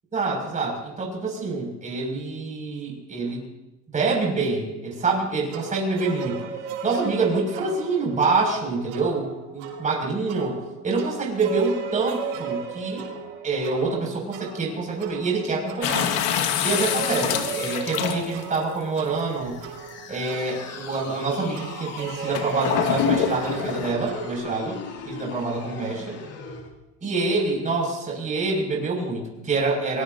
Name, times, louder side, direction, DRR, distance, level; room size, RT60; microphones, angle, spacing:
voice 1, 0.1-3.4 3.9-6.4 6.8-13.1 13.4-16.1 16.6-19.6 20.1-24.8 25.1-26.2 27.0-30.0, right 3 dB, 20° right, -1 dB, 6.1 m, -26 dB
sound 1, 5.5-24.4, right 5 dB, 70° right, 4.2 m, -36 dB
sound 2, 15.8-18.6 19.4-19.5 22.3-23.9, left 9 dB, 65° left, 1.8 m, -25 dB
sound 3, 19.3-26.7, left 5 dB, 45° left, 3.1 m, -39 dB
24.0 x 20.5 x 2.7 m, 0.97 s
supercardioid pair, 120°, 36 cm